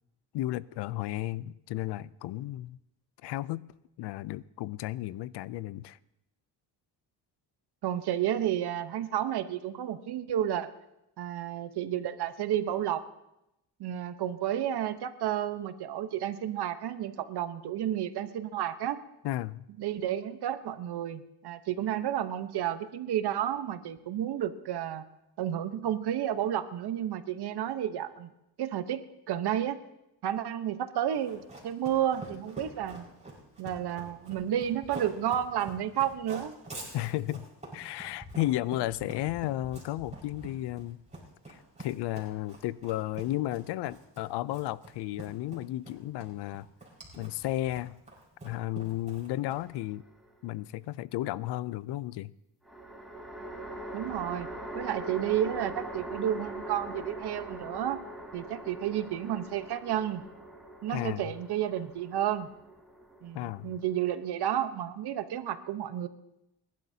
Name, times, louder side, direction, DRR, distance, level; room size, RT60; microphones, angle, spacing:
voice 1, 0.3-2.8 3.2-3.6 4.0-6.0 19.2-19.7 36.9-37.4 37.7-41.0 41.5-46.7 47.2-48.0 48.4-50.1 50.4-52.3 60.9-61.2 63.3-63.7, left 15 dB, 85° left, 0.6 m, -33 dB
voice 2, 7.8-10.7 11.2-13.0 13.8-19.0 19.8-25.0 25.4-28.3 28.6-29.8 30.2-33.0 33.6-36.5 53.9-54.5 54.7-58.0 58.3-60.2 60.8-62.5 63.2-66.1, right 10 dB, 75° right, 1.1 m, -31 dB
Run, 31.1-49.8, right 2 dB, 15° right, 5.2 m, -46 dB
sound 1, 49.5-50.4 52.6-64.0, right 1 dB, ahead, 3.6 m, -42 dB
30.0 x 12.0 x 2.8 m
cardioid pair, 80°, 40 cm